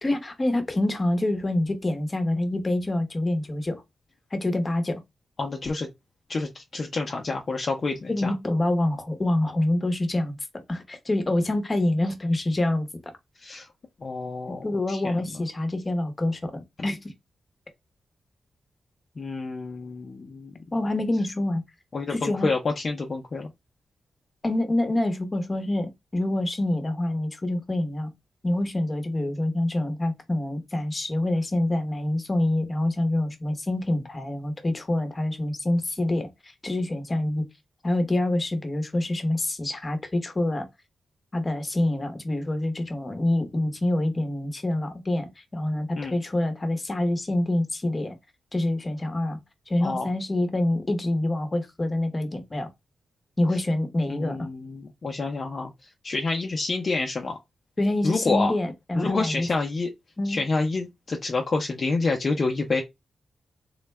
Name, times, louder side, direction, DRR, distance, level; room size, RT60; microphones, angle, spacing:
voice 1, 0.0-3.8 4.3-5.0 8.1-10.4 10.7-12.9 14.6-17.1 20.7-21.6 22.1-22.5 24.4-28.1 28.4-37.4 37.8-40.7 41.3-48.2 48.5-49.4 49.7-52.7 53.4-54.5 57.8-59.5 60.2-60.4, left 1 dB, 25° left, 0.9 m, -26 dB
voice 2, 5.4-5.9 6.3-8.3 13.4-13.7 14.0-15.2 16.8-16.9 19.2-20.5 21.9-23.5 46.0-46.1 49.8-50.1 54.1-57.4 58.0-58.5 58.9-59.9 60.2-62.8, left 3 dB, 40° left, 0.6 m, -28 dB
3.8 x 2.2 x 3.2 m
wide cardioid pair, 110°, 0 cm